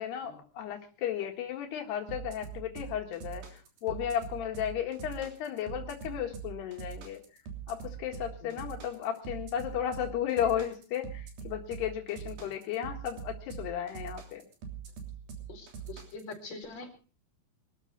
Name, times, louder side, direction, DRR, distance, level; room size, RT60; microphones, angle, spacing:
voice 1, 0.0-7.2 7.7-14.4, left 10 dB, 85° left, 3 dB, 3.8 m, -34 dB
sound 1, 2.1-16.3, right 8 dB, 65° right, 4.8 m, -43 dB
voice 2, 15.5-17.0, left 3 dB, 40° left, 1 dB, 5.4 m, -44 dB
24.0 x 13.0 x 4.0 m, 0.35 s
omnidirectional pair, 4.6 m